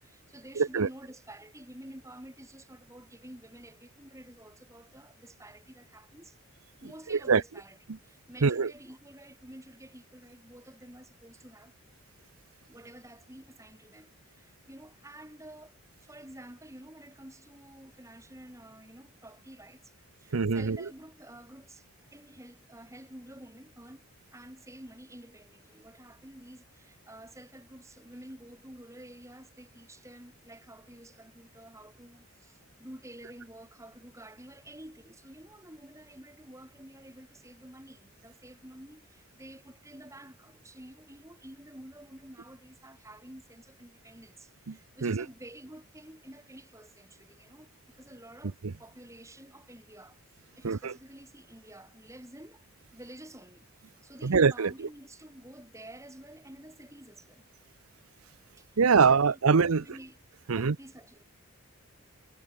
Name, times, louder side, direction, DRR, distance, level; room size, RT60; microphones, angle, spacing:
voice 1, 0.0-6.4 6.8-7.8 8.0-11.7 12.7-19.9 20.2-21.9 22.1-50.2 50.5-52.6 52.9-57.4 58.6-58.7 59.1-60.2 60.5-61.2, right 1 dB, 15° right, 5.1 m, -50 dB
voice 2, 0.6-0.9 7.1-7.4 8.4-8.7 20.3-20.8 44.7-44.8 45.0-45.3 48.6-48.7 50.6-50.9 54.2-54.7 58.8-59.8 60.5-60.8, right 5 dB, 80° right, 0.7 m, -23 dB
head